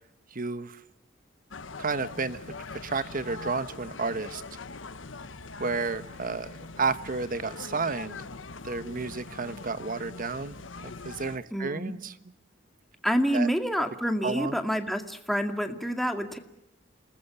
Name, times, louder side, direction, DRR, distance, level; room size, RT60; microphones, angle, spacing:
voice 1, 0.3-0.8 1.8-2.4 2.8-4.4 5.6-6.5 6.8-8.2 8.6-10.6 10.8-12.1 13.3-13.5 14.2-14.6, right 4 dB, 45° right, 14 dB, 1.2 m, -31 dB
sound 1, 1.5-11.4, left 3 dB, 90° left, 1.2 m, -42 dB
voice 2, 11.5-11.9 13.0-16.4, equal, ahead, 6 dB, 2.2 m, -28 dB
29.0 x 20.5 x 7.1 m, 0.81 s
head